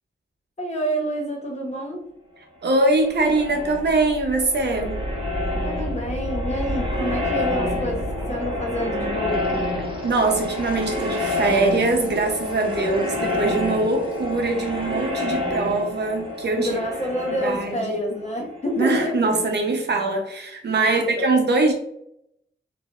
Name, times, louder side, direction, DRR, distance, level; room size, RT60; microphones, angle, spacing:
voice 1, 0.6-2.0 5.6-9.5 16.6-19.3 20.8-21.3, equal, 35° left, 1 dB, 0.8 m, -28 dB
voice 2, 2.6-5.0 10.0-16.8 17.4-18.0 18.8-21.7, right 3 dB, 60° right, 3 dB, 0.7 m, -22 dB
sound 1, 2.8-19.4, left 1 dB, 25° right, 0.8 m, -28 dB
4.1 x 2.6 x 2.3 m, 0.76 s
wide cardioid pair, 140°, 20 cm